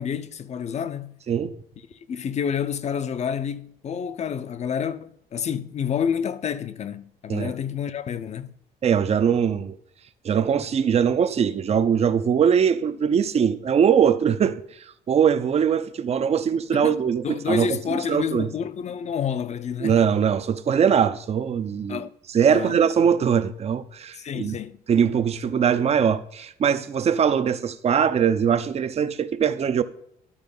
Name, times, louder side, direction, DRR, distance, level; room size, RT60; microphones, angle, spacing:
voice 1, 0.0-1.2 1.9-8.5 16.7-20.0 21.9-22.1 22.5-22.8 24.1-24.8, left 7 dB, 40° left, 0.7 m, -29 dB
voice 2, 8.8-9.8 10.2-14.6 15.1-18.5 19.8-22.0 22.3-24.5 24.9-29.8, right 7 dB, 40° right, 0.7 m, -21 dB
11.5 x 4.5 x 5.4 m
cardioid pair, 110°, 17 cm